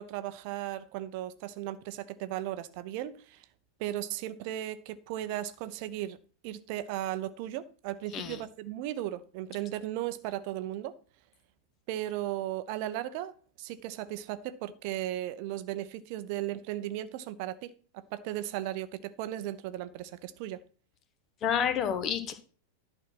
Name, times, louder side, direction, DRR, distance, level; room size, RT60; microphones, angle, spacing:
voice 1, 0.0-3.5 3.8-6.2 6.4-11.0 11.9-20.6, right 13 dB, 45° right, 0.7 m, -36 dB
voice 2, 21.4-22.3, left 8 dB, 30° left, 1.3 m, -29 dB
11.0 x 4.3 x 6.0 m
figure-of-eight pair, 90°, 0 cm